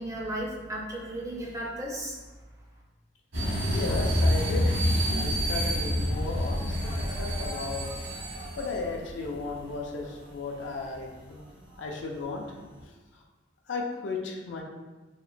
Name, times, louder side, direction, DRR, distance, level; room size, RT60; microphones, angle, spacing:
voice 1, 0.0-2.2, right 1 dB, 15° right, -3 dB, 0.4 m, -34 dB
sound 1, 3.3-10.2 10.5-10.6 10.9-11.0 11.7-11.8 12.8-12.9, equal, 75° right, 1.1 m, -28 dB
voice 2, 3.7-4.8 5.1-7.9 8.6-11.4 11.8-12.5 13.7-14.6, left 3 dB, 65° left, 0 dB, 0.4 m, -35 dB
2.9 x 2.1 x 2.4 m, 1.2 s
head